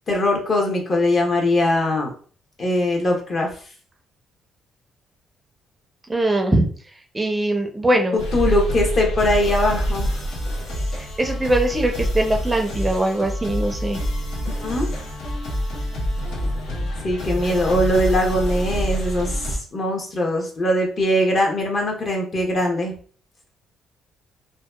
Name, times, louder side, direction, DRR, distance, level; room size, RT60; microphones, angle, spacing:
voice 1, 0.1-2.1 2.6-3.5 8.1-10.2 14.4-14.9 17.0-22.9, left 1 dB, 45° left, 1 dB, 0.8 m, -21 dB
voice 2, 6.1-6.7 7.1-8.2 10.9-14.0, right 1 dB, 15° right, 3 dB, 0.4 m, -21 dB
sound 1, 8.2-19.6, equal, 85° left, 0.9 m, -26 dB
2.7 x 2.1 x 2.2 m, 0.43 s
cardioid pair, 80°, 0 cm